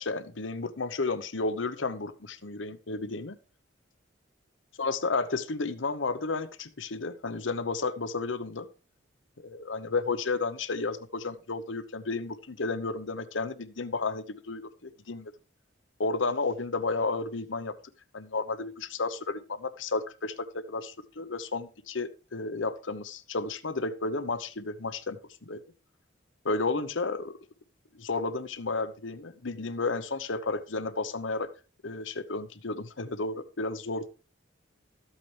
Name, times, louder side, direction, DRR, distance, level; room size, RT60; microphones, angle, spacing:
voice 1, 0.0-3.4 4.8-8.7 9.4-15.3 16.0-17.7 18.1-25.6 26.4-27.3 27.9-31.5 31.8-34.1, left 3 dB, 80° left, 13 dB, 0.9 m, -32 dB
13.5 x 8.4 x 3.3 m, 0.35 s
head